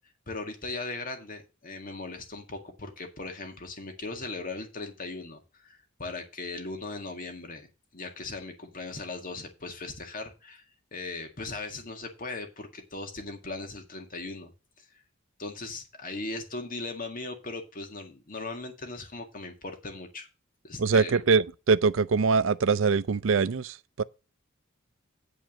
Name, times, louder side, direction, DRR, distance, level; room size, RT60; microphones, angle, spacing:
voice 1, 0.3-7.7 7.9-10.6 10.9-14.5 14.8-14.9 15.4-20.3 20.6-21.2, left 3 dB, 45° left, 1.9 m, -38 dB
voice 2, 20.8-24.0, right 5 dB, 70° right, 0.5 m, -23 dB
9.1 x 5.0 x 6.3 m
head